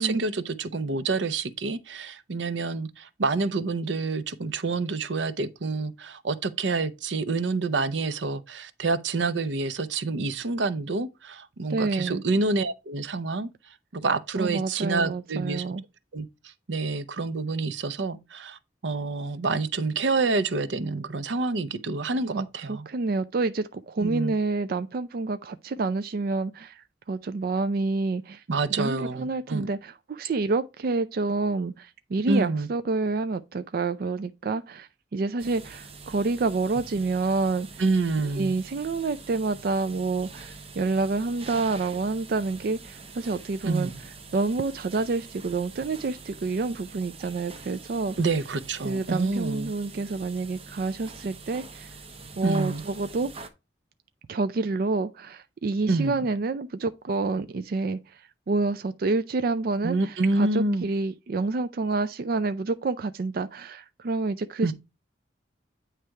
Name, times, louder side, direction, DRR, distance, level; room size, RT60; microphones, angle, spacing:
voice 1, 0.0-13.5 13.9-15.6 16.1-22.9 24.0-24.3 28.5-29.7 32.3-32.7 37.8-38.6 43.6-44.0 48.2-49.7 52.4-52.8 55.9-56.2 59.8-60.9 64.6-64.7, right 3 dB, 85° right, 0.7 m, -28 dB
voice 2, 11.7-12.2 14.4-15.8 22.3-26.8 27.1-28.4 28.7-37.8 38.4-43.9 44.3-48.2 48.8-51.9 52.4-53.3 54.3-64.7, right 3 dB, 55° right, 0.4 m, -28 dB
sound 1, 35.4-53.5, right 4 dB, 35° right, 0.9 m, -45 dB
8.9 x 3.3 x 4.6 m
head